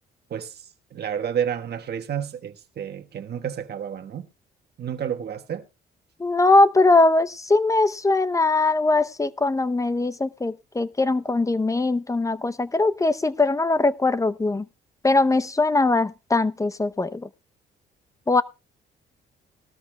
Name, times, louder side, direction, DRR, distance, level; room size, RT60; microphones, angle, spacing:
voice 1, 0.9-4.3 4.8-5.6, right 8 dB, 55° right, 1.4 m, -30 dB
voice 2, 6.2-14.7 15.0-17.3 18.3-18.4, left 2 dB, 15° left, 0.7 m, -21 dB
19.5 x 13.0 x 2.3 m
cardioid pair, 90°, 20 cm